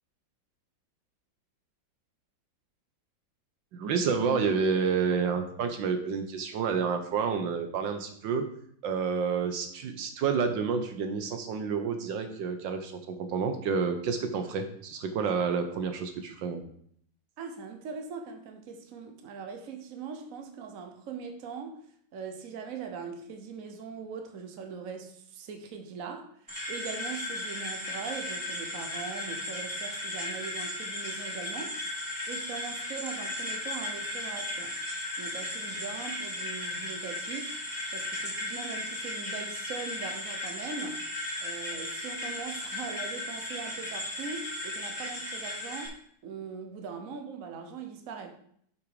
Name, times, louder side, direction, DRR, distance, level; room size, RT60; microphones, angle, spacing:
voice 1, 3.7-8.4 8.8-16.6, right 5 dB, 75° right, 1.6 m, -29 dB
voice 2, 17.4-21.8 22.1-31.8 32.3-34.8 35.2-37.5 37.9-41.0 41.4-48.4, right 5 dB, 50° right, 1.3 m, -41 dB
sound 1, 26.5-45.9, left 1 dB, 10° right, 3.4 m, -36 dB
8.2 x 6.0 x 4.8 m
omnidirectional pair, 2.1 m